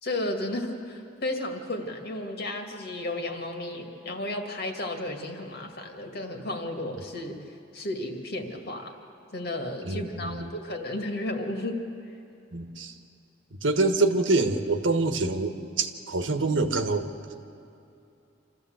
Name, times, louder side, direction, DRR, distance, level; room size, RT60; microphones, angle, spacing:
voice 1, 0.0-7.4 7.7-9.0 9.3-11.8, left 1 dB, 55° left, 3 dB, 2.2 m, -33 dB
voice 2, 9.8-10.5 12.5-12.9 13.5-17.1, right 3 dB, 90° right, 6 dB, 1.4 m, -26 dB
26.5 x 14.0 x 8.0 m, 2.8 s
head